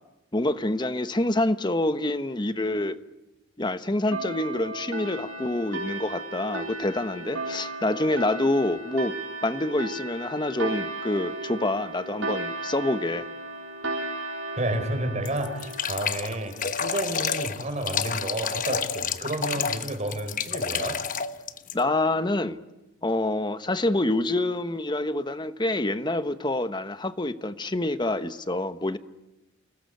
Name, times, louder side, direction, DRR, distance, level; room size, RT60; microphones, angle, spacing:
voice 1, 0.3-3.0 3.6-9.1 9.4-13.3 21.7-22.6 23.0-29.0, left 1 dB, 20° left, 1.2 m, -27 dB
sound 1, 4.1-17.2, right 2 dB, 80° right, 6.3 m, -35 dB
voice 2, 14.6-16.5 16.8-21.0, right 1 dB, 35° right, 4.4 m, -30 dB
sound 2, 15.3-21.8, left 6 dB, 40° left, 1.1 m, -29 dB
29.0 x 20.0 x 9.4 m
head